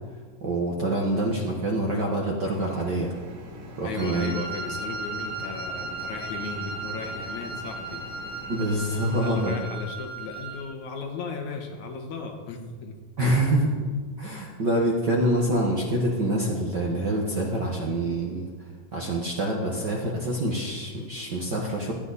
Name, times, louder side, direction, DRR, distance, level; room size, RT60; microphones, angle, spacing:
voice 1, 0.4-3.1 3.8-4.3 8.5-9.6 13.2-13.7 14.2-18.5 18.9-21.9, right 1 dB, 50° right, -1 dB, 1.4 m, -26 dB
sound 1, 2.5-9.5, equal, 70° right, 3.2 m, -43 dB
voice 2, 3.8-8.1 9.2-13.7, left 4 dB, 70° left, 3 dB, 2.6 m, -36 dB
Wind instrument woodwind instrument, 4.0-10.7, right 3 dB, 25° right, 2.7 m, -36 dB
18.0 x 13.0 x 4.1 m, 1.5 s
omnidirectional pair, 3.6 m